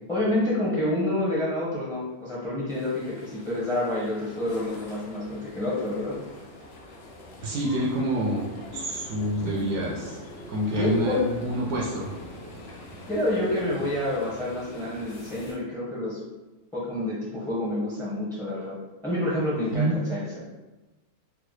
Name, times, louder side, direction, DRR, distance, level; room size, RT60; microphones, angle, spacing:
voice 1, 0.1-6.1 10.7-11.2 13.1-16.2 16.7-18.7 19.0-20.3, left 1 dB, 5° left, -8 dB, 0.4 m, -28 dB
sound 1, 2.7-15.5, left 2 dB, 75° left, 1.1 m, -46 dB
sound 2, 4.5-15.5, left 1 dB, 55° left, 0.8 m, -46 dB
voice 2, 7.4-8.5 8.7-10.2 10.5-12.1 19.7-20.0, right 1 dB, 75° right, -2 dB, 1.1 m, -27 dB
3.8 x 2.1 x 3.1 m, 1.1 s
omnidirectional pair, 1.6 m